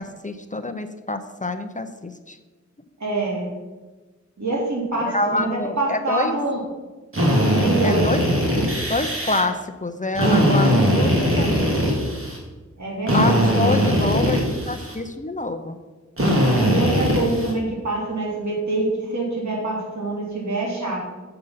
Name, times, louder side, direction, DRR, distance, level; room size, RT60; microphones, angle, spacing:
voice 1, 0.0-2.4 5.0-6.4 7.8-8.2 8.9-11.8 13.1-15.8, left 2 dB, 25° left, 7 dB, 0.6 m, -26 dB
voice 2, 3.0-3.5 4.4-6.6 7.6-8.1 12.8-13.5 16.6-21.0, right 2 dB, 70° right, -3 dB, 2.9 m, -25 dB
Drill, 7.1-9.4 10.1-12.4 13.1-15.0 16.2-17.5, equal, 45° right, 2.6 m, -20 dB
7.8 x 6.6 x 5.7 m, 1.3 s
wide cardioid pair, 60°, 30 cm